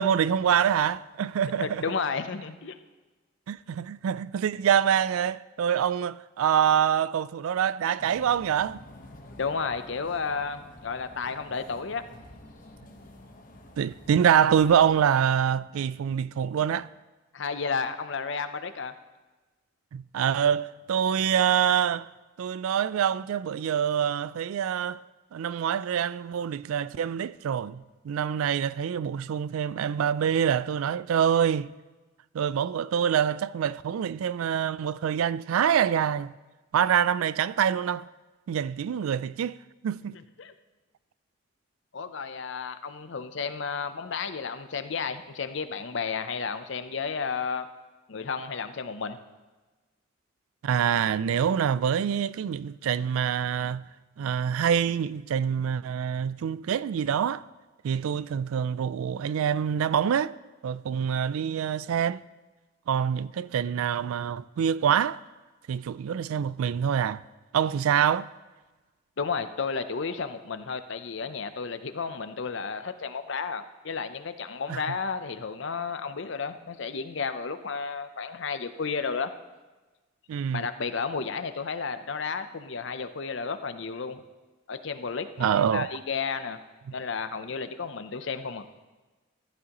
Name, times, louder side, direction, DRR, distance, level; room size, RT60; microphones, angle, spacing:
voice 1, 0.0-1.8 3.5-8.8 13.8-16.9 19.9-22.1 22.4-25.0 25.3-31.7 32.3-36.3 36.7-38.1 38.5-39.6 39.8-40.2 50.6-53.9 54.2-57.4 57.8-60.3 60.6-62.2 62.9-65.2 65.7-67.2 67.5-68.3 74.7-74.8 80.3-80.7 85.4-85.9, right 8 dB, 90° right, 0.3 m, -25 dB
voice 2, 1.6-2.8 9.4-12.0 17.3-18.9 40.1-40.5 41.9-47.7 48.1-49.2 69.2-79.3 80.5-84.2 84.7-86.6 86.9-88.7, left 5 dB, 60° left, 0.6 m, -32 dB
sound 1, 8.0-15.0, left 1 dB, 40° left, 1.1 m, -49 dB
14.5 x 11.0 x 3.0 m
head